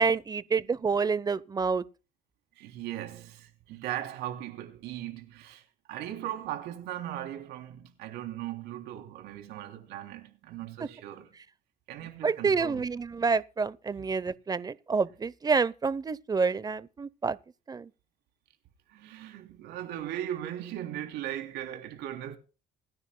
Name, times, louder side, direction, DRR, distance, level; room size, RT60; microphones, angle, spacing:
voice 1, 0.0-1.8 12.2-17.4 17.7-17.9, right 5 dB, 20° right, 0.8 m, -28 dB
voice 2, 2.6-11.4 11.9-12.8 14.0-14.1 18.9-22.4, right 12 dB, 85° right, 3.3 m, -38 dB
27.5 x 9.9 x 2.3 m
cardioid pair, 110°, 17 cm